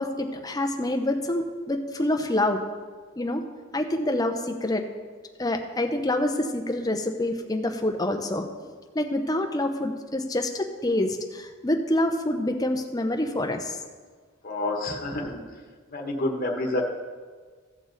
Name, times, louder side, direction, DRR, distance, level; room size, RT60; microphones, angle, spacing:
voice 1, 0.0-2.6 3.2-3.4 3.7-4.8 5.4-13.8, left 1 dB, 20° left, 4 dB, 0.8 m, -27 dB
voice 2, 14.4-15.4 15.9-16.8, left 2 dB, 45° left, 0 dB, 1.4 m, -28 dB
15.5 x 6.9 x 4.1 m, 1.5 s
head